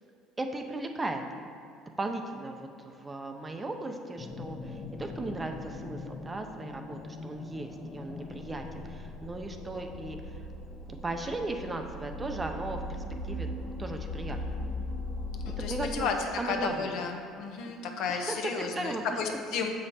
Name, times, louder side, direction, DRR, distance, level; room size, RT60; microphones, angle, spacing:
voice 1, 0.4-1.2 2.0-10.2 10.9-13.5 13.8-14.6 15.5-16.1 16.4-16.9 18.1-19.0, right 2 dB, 20° right, 5 dB, 0.5 m, -36 dB
sound 1, 4.2-15.9, left 2 dB, 35° left, 0.7 m, -39 dB
voice 2, 15.4-19.7, left 5 dB, 70° left, 3 dB, 0.8 m, -33 dB
6.8 x 5.2 x 4.2 m, 2.5 s
cardioid pair, 110°, 0 cm